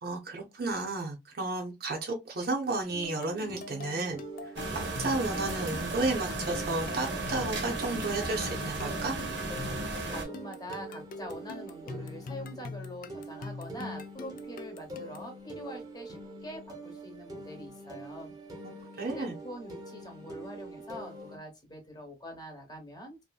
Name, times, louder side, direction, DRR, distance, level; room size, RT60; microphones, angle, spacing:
voice 1, 0.0-9.2 18.6-19.4, right 2 dB, 60° right, 0.6 m, -33 dB
sound 1, 2.8-21.4, right 2 dB, 20° right, 0.7 m, -45 dB
sound 2, 3.0-15.3, left 3 dB, 50° left, 0.3 m, -44 dB
sound 3, 4.6-10.3, right 2 dB, 90° right, 0.8 m, -35 dB
voice 2, 10.1-18.3 19.0-23.2, equal, 25° left, 0.9 m, -44 dB
2.7 x 2.5 x 2.2 m
head